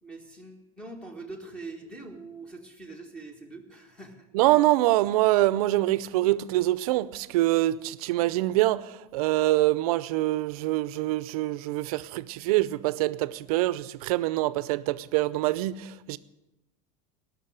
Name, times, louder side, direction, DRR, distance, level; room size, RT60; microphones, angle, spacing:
voice 1, 0.0-4.3, right 3 dB, 5° left, 1.6 m, -43 dB
voice 2, 4.3-16.2, right 16 dB, 70° right, 0.7 m, -25 dB
18.5 x 6.4 x 8.9 m
supercardioid pair, 170°, 19 cm